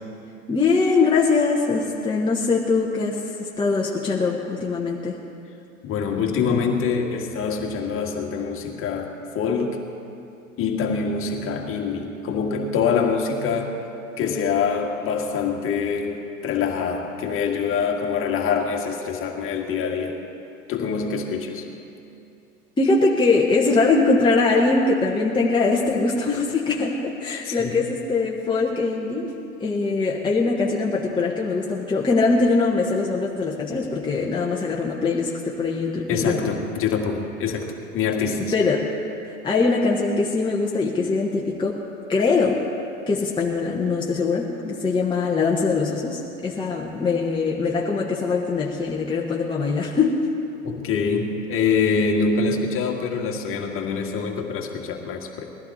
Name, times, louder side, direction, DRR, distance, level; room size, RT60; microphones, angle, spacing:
voice 1, 0.5-5.2 22.8-29.3 29.6-36.5 38.5-38.9 39.2-41.8 42.1-42.6 43.1-50.3, left 3 dB, 10° left, -3 dB, 1.3 m, -22 dB
voice 2, 5.8-9.8 10.6-13.8 14.2-20.2 20.7-21.7 27.4-27.8 36.1-37.7 37.9-38.5 50.6-55.5, left 5 dB, 30° left, 2 dB, 2.0 m, -25 dB
21.0 x 14.5 x 4.3 m, 2.7 s
figure-of-eight pair, 85°, 41 cm